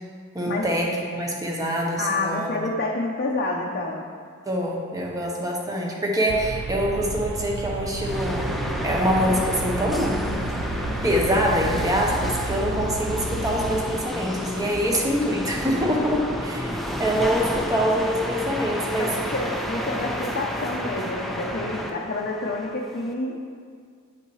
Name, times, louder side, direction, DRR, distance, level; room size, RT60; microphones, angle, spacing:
voice 1, 0.3-2.5 4.5-8.5 8.8-10.3 11.0-19.1, equal, 15° right, -2 dB, 0.9 m, -25 dB
voice 2, 2.0-4.0 17.1-17.2 19.0-23.4, left 2 dB, 45° left, -2 dB, 0.6 m, -28 dB
sound 1, 6.3-14.0, right 3 dB, 60° right, 0.3 m, -32 dB
sound 2, 8.0-23.1, equal, ahead, 0.5 m, -31 dB
9.3 x 5.5 x 3.1 m, 2.1 s
head